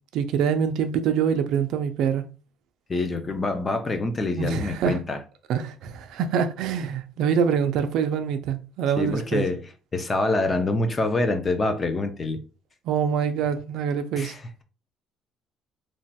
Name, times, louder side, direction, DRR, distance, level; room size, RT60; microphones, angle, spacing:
voice 1, 0.1-2.2 4.4-5.0 5.5-9.4 12.9-14.3, right 7 dB, 60° right, 0.3 m, -25 dB
voice 2, 2.9-5.2 9.0-12.4 14.2-14.6, left 2 dB, 20° left, 0.3 m, -26 dB
3.0 x 2.1 x 2.7 m
cardioid pair, 180°, 0 cm